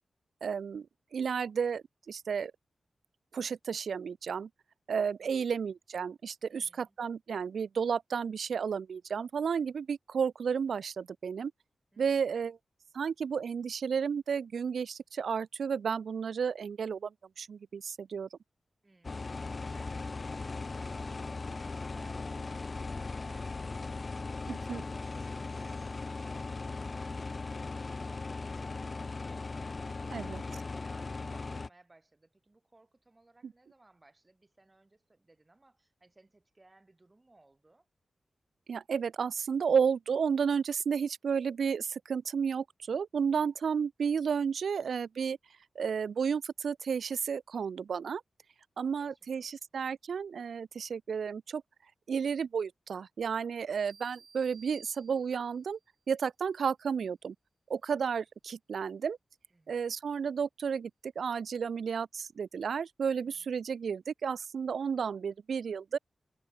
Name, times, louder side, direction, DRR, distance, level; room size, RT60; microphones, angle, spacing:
voice 1, 0.4-0.9 1.1-2.5 3.3-4.5 4.9-11.5 12.0-12.6 12.9-17.1 17.4-18.3 24.5-24.8 30.1-30.4 38.7-45.4 45.8-48.2 48.8-51.6 52.1-55.8 56.1-57.3 57.7-59.2 59.7-60.9 61.2-66.0, right 6 dB, 85° right, 0.5 m, -32 dB
voice 2, 5.2-5.5 6.5-7.0 11.9-12.4 18.8-37.9 49.0-49.6 59.5-60.0 63.2-63.5, right 2 dB, 20° right, 7.6 m, -63 dB
sound 1, 19.0-31.7, left 3 dB, 35° left, 0.6 m, -38 dB
sound 2, 53.9-55.7, right 6 dB, 70° right, 2.4 m, -56 dB
wide cardioid pair, 140°, 0 cm